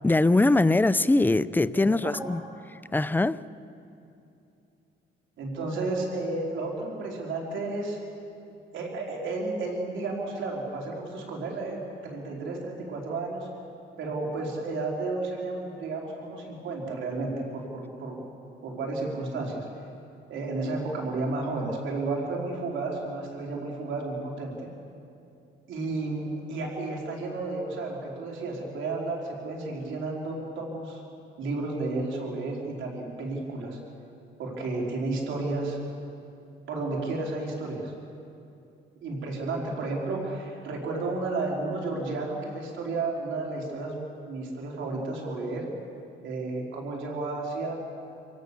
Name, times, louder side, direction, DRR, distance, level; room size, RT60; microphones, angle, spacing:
voice 1, 0.0-2.4 2.9-3.4, left 2 dB, 10° left, 0.5 m, -22 dB
voice 2, 1.7-2.2 5.4-8.0 8.7-13.5 14.0-18.2 18.6-19.7 20.3-24.7 25.7-31.0 31.4-33.8 34.4-35.8 36.7-37.9 39.0-45.7 46.2-47.8, right 3 dB, 75° right, 4.3 m, -32 dB
27.0 x 17.0 x 6.9 m
cardioid pair, 90°, 20 cm